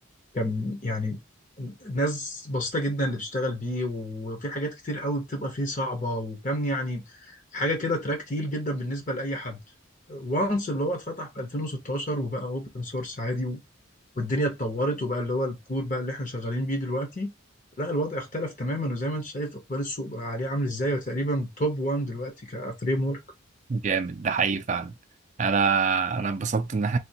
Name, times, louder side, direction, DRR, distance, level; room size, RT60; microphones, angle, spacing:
voice 1, 0.3-1.2 1.6-9.6 10.1-13.6 14.2-17.3 17.8-23.2, equal, 40° left, 0.8 m, -29 dB
voice 2, 23.7-24.9 25.4-27.0, right 5 dB, 35° right, 0.4 m, -25 dB
3.5 x 2.4 x 2.7 m
head